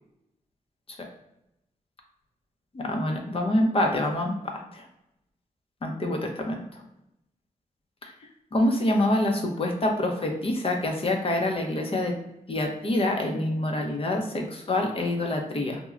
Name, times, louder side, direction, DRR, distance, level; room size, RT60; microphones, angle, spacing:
voice 1, 2.7-4.8 5.8-6.6 8.5-12.1 12.5-15.8, left 1 dB, 40° left, 2 dB, 0.7 m, -26 dB
3.0 x 2.2 x 2.4 m, 0.86 s
cardioid pair, 60°, 15 cm